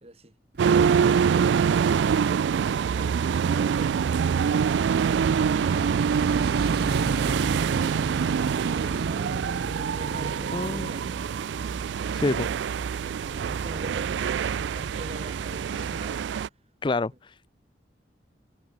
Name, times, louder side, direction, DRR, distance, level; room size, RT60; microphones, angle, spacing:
voice 1, 0.0-4.3 8.8-12.1 13.0-16.3, right 1 dB, 35° right, 3.5 m, -44 dB
Motorcycle, 0.5-16.3, right 2 dB, 60° right, 0.9 m, -36 dB
sound 1, 0.6-16.5, right 7 dB, 75° right, 0.3 m, -25 dB
voice 2, 10.5-10.9 12.1-12.5 16.8-17.3, left 3 dB, 25° left, 0.4 m, -27 dB
head